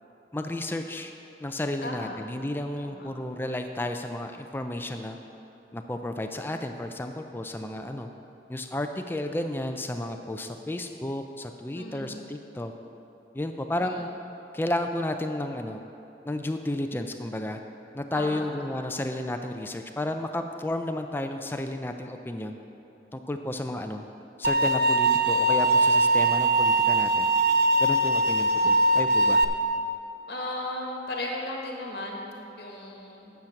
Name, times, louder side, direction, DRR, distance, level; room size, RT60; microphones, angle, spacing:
voice 1, 0.3-1.1 1.4-5.2 5.7-8.1 8.5-12.7 13.3-14.1 14.5-15.8 16.2-17.6 17.9-22.6 23.1-24.0 24.4-27.3 27.8-29.4, left 1 dB, 10° left, 6 dB, 0.4 m, -32 dB
voice 2, 1.8-2.2 2.8-3.1 11.7-12.2 13.8-14.1 18.1-18.5 30.3-33.3, left 1 dB, 70° left, 0 dB, 1.5 m, -36 dB
sound 1, 24.4-29.4, right 2 dB, 55° right, 0.5 m, -21 dB
9.3 x 7.2 x 5.9 m, 3.0 s
head